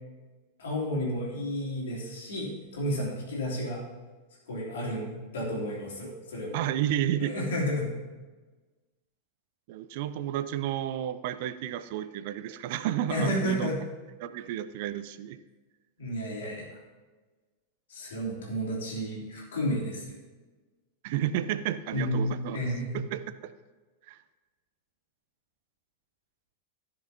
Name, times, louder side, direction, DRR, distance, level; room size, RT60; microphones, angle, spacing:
voice 1, 0.6-3.8 4.5-6.6 7.2-7.9 13.1-13.8 16.0-16.6 17.9-20.1 21.9-23.0, equal, 60° left, -5 dB, 3.1 m, -31 dB
voice 2, 6.5-7.4 9.7-13.7 14.2-15.4 21.0-22.6 23.1-23.2 24.1-24.2, right 11 dB, 50° right, 12 dB, 0.4 m, -31 dB
15.0 x 6.7 x 2.8 m, 1.3 s
figure-of-eight pair, 90°, 0 cm